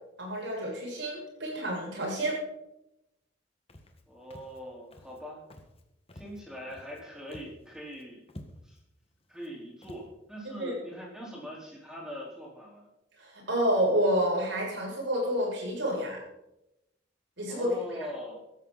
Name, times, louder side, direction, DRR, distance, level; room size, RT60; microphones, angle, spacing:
voice 1, 0.2-2.4 10.6-10.7 13.2-16.2 17.4-17.7, equal, 75° right, -2 dB, 7.5 m, -29 dB
Walk footsteps, 3.7-4.0 4.3-4.6 4.9-5.2 5.5-5.8 6.1-7.0 7.3-7.6 7.9-8.0 8.3-8.8 9.4-9.5 9.8-10.1, left 1 dB, 30° left, 1.7 m, -49 dB
voice 2, 4.1-5.4 6.1-8.8 9.3-12.9 17.5-18.4, equal, 5° right, -2 dB, 4.4 m, -42 dB
17.0 x 14.0 x 4.2 m, 0.88 s
head